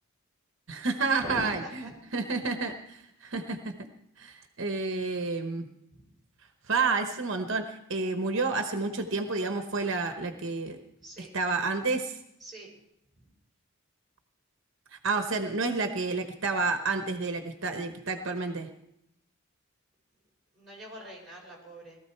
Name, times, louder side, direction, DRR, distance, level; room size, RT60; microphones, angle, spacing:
voice 1, 0.7-1.8 2.1-3.7 4.2-5.7 6.7-10.8 11.2-12.2 14.9-18.7, right 3 dB, 55° right, 6 dB, 1.0 m, -30 dB
voice 2, 1.2-1.9 5.9-6.0 11.0-11.3 12.4-12.7 13.2-13.3 20.5-22.0, right 1 dB, ahead, -4 dB, 5.5 m, -43 dB
18.5 x 13.5 x 4.6 m, 0.79 s
head